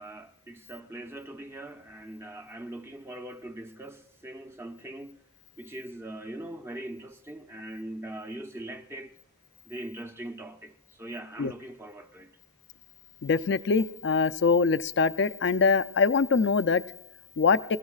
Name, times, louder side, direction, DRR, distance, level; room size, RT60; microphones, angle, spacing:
voice 1, 0.0-5.2 5.6-9.1 9.6-12.3, right 1 dB, 10° right, 0.7 m, -41 dB
voice 2, 13.2-16.8 17.4-17.6, left 4 dB, 55° left, 0.4 m, -23 dB
29.0 x 16.0 x 2.4 m
head